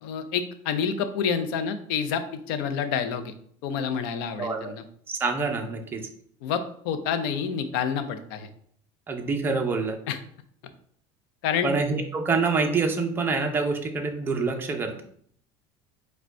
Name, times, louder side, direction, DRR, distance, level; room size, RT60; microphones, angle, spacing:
voice 1, 0.0-3.3 3.6-4.8 6.4-8.5 10.1-10.2 11.4-11.7, left 7 dB, 90° left, 10 dB, 0.6 m, -28 dB
voice 2, 4.4-4.7 5.1-6.0 9.1-10.0 11.6-15.0, right 4 dB, 20° right, 3 dB, 0.6 m, -26 dB
4.9 x 2.3 x 4.5 m, 0.62 s
cardioid pair, 155°, 12 cm